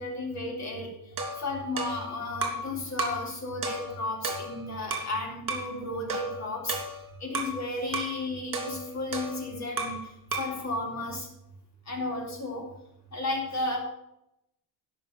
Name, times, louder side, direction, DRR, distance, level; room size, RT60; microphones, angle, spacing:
voice 1, 0.0-6.9 7.2-11.3 11.9-12.7 13.1-13.8, left 2 dB, 40° left, 0 dB, 4.0 m, -33 dB
sound 1, 1.2-2.7 3.0-3.3 3.6-5.1 5.5-5.7 6.1-7.6 7.9-8.2 8.5-10.1 10.3-10.6, right 2 dB, 50° right, 3.0 m, -34 dB
12.0 x 5.6 x 9.0 m, 0.82 s
cardioid pair, 140°, 42 cm